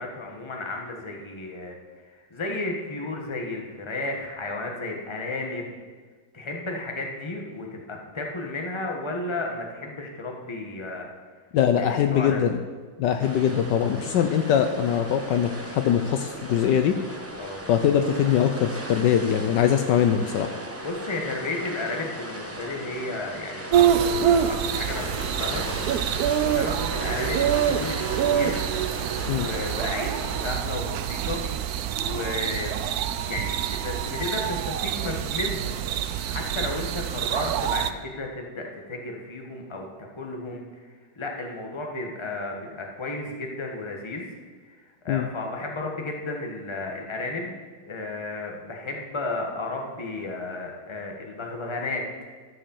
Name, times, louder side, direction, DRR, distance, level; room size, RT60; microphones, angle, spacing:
voice 1, 0.0-1.8 2.0-5.8 6.3-11.1 11.8-12.4 17.4-17.6 20.8-25.7 26.3-28.6 29.3-31.4 31.9-32.7 33.2-35.8 36.3-40.6 41.1-44.3 44.6-44.8 45.0-52.0, left 2 dB, 15° left, 1 dB, 1.1 m, -33 dB
voice 2, 11.5-12.6 13.0-17.0 17.7-20.5 29.3-29.5 45.1-45.3, left 9 dB, 75° left, 7 dB, 1.2 m, -22 dB
sound 1, 13.2-30.6, right 1 dB, 15° right, 0.6 m, -36 dB
sound 2, 23.7-37.9, right 9 dB, 75° right, 0.9 m, -26 dB
12.5 x 5.3 x 7.1 m, 1.5 s
omnidirectional pair, 2.1 m